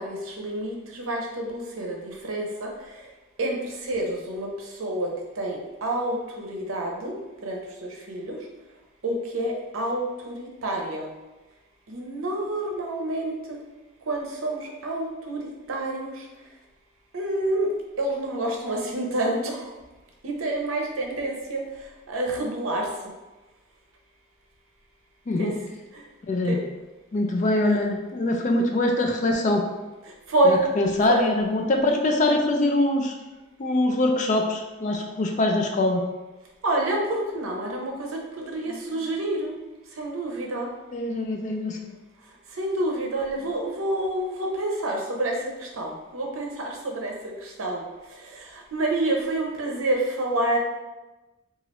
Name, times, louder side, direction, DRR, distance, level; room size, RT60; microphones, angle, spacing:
voice 1, 0.0-2.0 2.3-2.7 3.4-3.6 3.8-4.5 4.8-5.1 5.4-7.1 7.4-8.3 9.0-11.1 11.9-13.3 14.1-15.4 15.7-16.1 17.1-17.7 18.0-19.7 20.2-21.6 22.1-22.9 25.4-25.5 25.9-26.0 26.5-26.6 30.3-30.6 31.1-31.3 36.6-39.5 40.0-40.7 42.6-47.8 48.4-48.5 48.7-50.6, right 1 dB, 85° right, 0 dB, 0.6 m, -28 dB
voice 2, 26.3-26.6 27.1-29.7 30.5-33.1 33.6-36.0 40.9-41.8, left 2 dB, 35° left, 2 dB, 0.3 m, -23 dB
3.0 x 2.4 x 3.0 m, 1.1 s
head